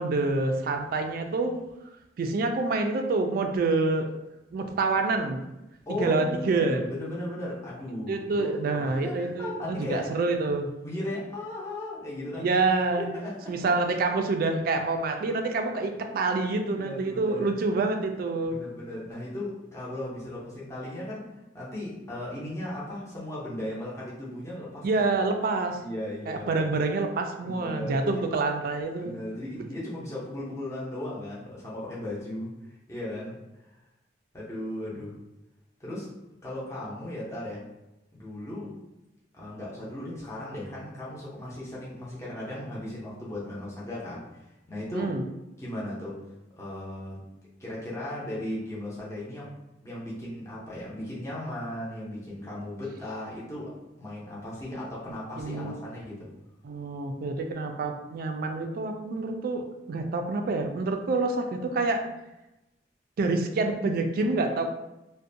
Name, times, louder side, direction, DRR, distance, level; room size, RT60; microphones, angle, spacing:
voice 1, 0.0-1.6 2.2-4.1 4.5-5.4 6.0-6.8 8.1-10.7 12.3-13.1 13.5-18.6 24.8-25.8 26.3-29.1 29.6-29.7 44.9-45.2 55.4-55.8 56.6-62.0 63.2-64.7, right 3 dB, 55° right, 5 dB, 0.3 m, -27 dB
voice 2, 5.9-10.1 10.8-12.5 13.0-13.5 16.8-17.6 18.5-25.0 25.8-26.6 27.4-28.2 29.0-32.5 32.9-33.7 34.3-35.2 35.8-36.1 36.4-37.6 38.1-38.7 39.3-45.1 45.6-46.2 46.6-47.2 47.6-49.5 49.8-56.3, left 1 dB, 15° left, -7 dB, 0.6 m, -36 dB
2.5 x 2.1 x 2.6 m, 0.95 s
head